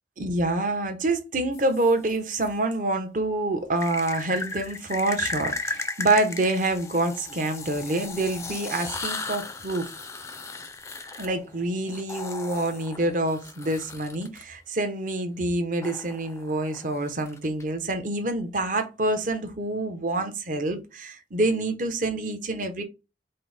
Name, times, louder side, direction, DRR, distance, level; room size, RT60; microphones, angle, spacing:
voice 1, 0.2-9.9 11.2-22.8, right 2 dB, 45° right, 0.8 m, -27 dB
sound 1, 1.5-2.5 3.8-14.4 15.8-17.6, left 3 dB, 15° left, 0.4 m, -36 dB
5.2 x 2.1 x 4.0 m
head